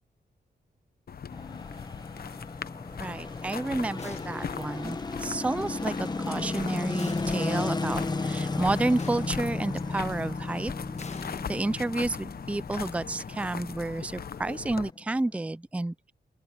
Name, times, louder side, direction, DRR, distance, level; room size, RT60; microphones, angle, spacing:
sound 1, 1.1-14.9, left 7 dB, 60° left, 0.9 m, -40 dB
sound 2, 1.3-15.5, left 3 dB, 25° left, 1.1 m, -34 dB
voice 1, 3.0-10.7 11.5-16.1, right 2 dB, 5° right, 0.4 m, -30 dB
sound 3, 4.0-4.7 7.0-7.8 9.0-9.8 11.0-12.2, left 4 dB, 40° left, 1.4 m, -45 dB
open air
wide cardioid pair, 120°, 18 cm